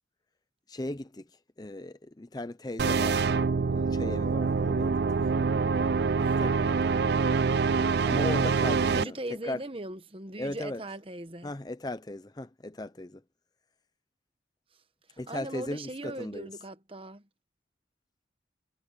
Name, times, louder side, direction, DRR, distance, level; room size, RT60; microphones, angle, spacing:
voice 1, 0.7-1.2 1.6-3.3 3.7-5.0 6.4-6.9 8.0-9.2 9.4-9.6 10.4-10.8 11.4-13.2 15.2-16.5, left 1 dB, 20° left, 0.6 m, -37 dB
sound 1, 2.8-9.0, right 4 dB, 55° right, 0.4 m, -25 dB
voice 2, 8.8-11.5 15.1-17.2, right 1 dB, 30° right, 1.2 m, -39 dB
head